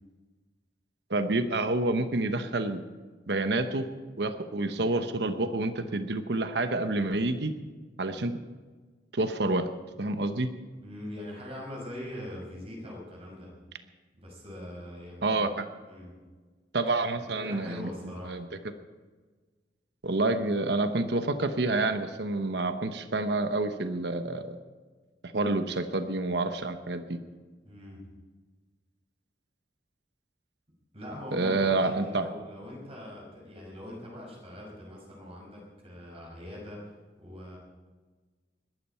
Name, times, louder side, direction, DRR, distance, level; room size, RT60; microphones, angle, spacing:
voice 1, 1.1-2.8 3.3-3.9 4.2-7.5 8.0-8.4 9.1-9.7 10.0-10.5 15.2-15.6 16.7-17.9 18.3-18.5 20.0-24.6 25.2-27.2 31.3-32.3, right 2 dB, 65° right, 9 dB, 1.0 m, -28 dB
voice 2, 10.8-13.5 14.2-15.4 15.9-16.1 17.2-18.4 27.7-28.0 30.9-36.9 37.2-37.6, left 1 dB, 35° right, -2 dB, 5.6 m, -42 dB
21.5 x 12.5 x 4.5 m, 1.4 s
head